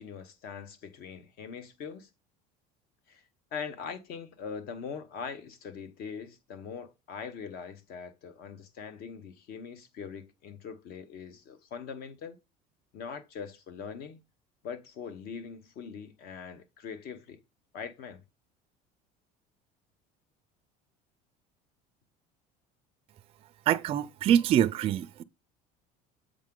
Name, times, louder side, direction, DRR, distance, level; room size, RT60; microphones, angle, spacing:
voice 1, 0.0-2.1 3.1-3.2 3.5-12.4 12.9-14.2 14.6-17.4 17.7-18.2, left 6 dB, 55° left, 1.1 m, -42 dB
voice 2, 23.7-25.2, right 10 dB, 35° right, 0.4 m, -25 dB
7.3 x 4.9 x 3.7 m
cardioid pair, 145°, 18 cm